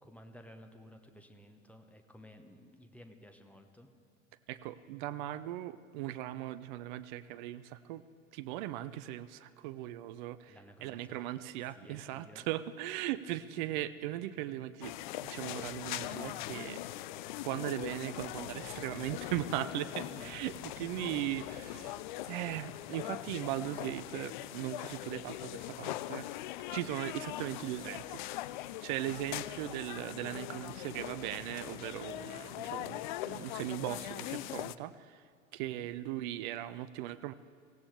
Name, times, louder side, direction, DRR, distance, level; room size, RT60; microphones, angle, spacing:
voice 1, 0.0-3.9 10.5-11.3 11.7-12.5 20.0-20.4 35.7-35.9, equal, 5° left, 6 dB, 1.0 m, -54 dB
voice 2, 4.5-8.0 8.3-14.9 15.2-16.8 17.4-22.0 22.3-26.3 26.7-28.2 28.8-33.0 33.3-35.2 35.5-37.3, right 13 dB, 35° right, 13 dB, 0.5 m, -38 dB
sound 1, 14.8-34.8, left 15 dB, 40° left, 0.4 m, -41 dB
24.0 x 16.5 x 3.4 m, 2.2 s
figure-of-eight pair, 85°, 40 cm